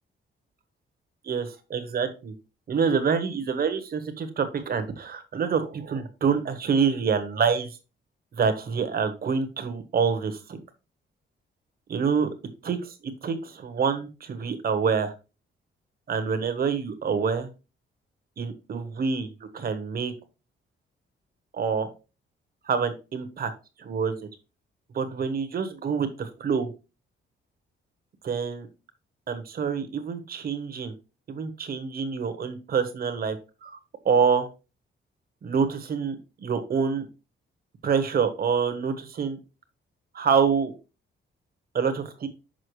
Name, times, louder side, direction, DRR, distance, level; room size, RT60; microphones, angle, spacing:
voice 1, 1.2-2.3 2.7-7.7 8.3-10.6 11.9-12.3 12.6-12.9 13.2-15.1 16.1-17.5 18.4-20.1 21.5-21.9 22.7-23.5 23.8-24.1 24.9-26.7 28.2-28.7 29.3-30.9 31.3-33.4 33.6-33.8 34.0-34.5 35.4-37.1 37.8-39.4 40.1-40.7 41.7-42.3, right 6 dB, 45° right, 9 dB, 1.1 m, -26 dB
6.3 x 5.9 x 3.1 m, 0.30 s
wide cardioid pair, 170°, 21 cm